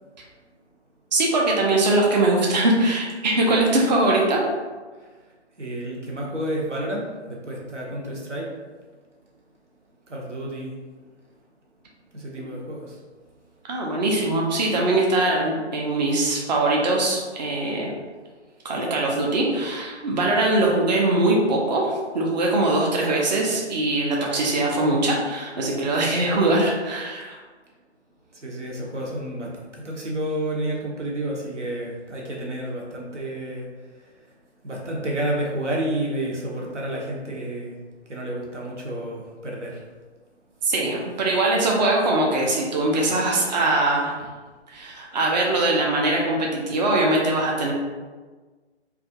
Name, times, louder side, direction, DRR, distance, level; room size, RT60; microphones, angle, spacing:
voice 1, 1.1-4.4 13.7-17.9 18.6-27.4 40.6-44.1 44.7-47.7, right 2 dB, 40° right, -2 dB, 0.4 m, -22 dB
voice 2, 5.0-8.5 10.1-10.7 12.1-13.0 28.3-34.4 34.6-37.8 38.1-39.8 42.9-43.2, right 1 dB, 90° right, -2 dB, 0.8 m, -30 dB
2.3 x 2.3 x 2.7 m, 1.4 s
figure-of-eight pair, 135°, 35 cm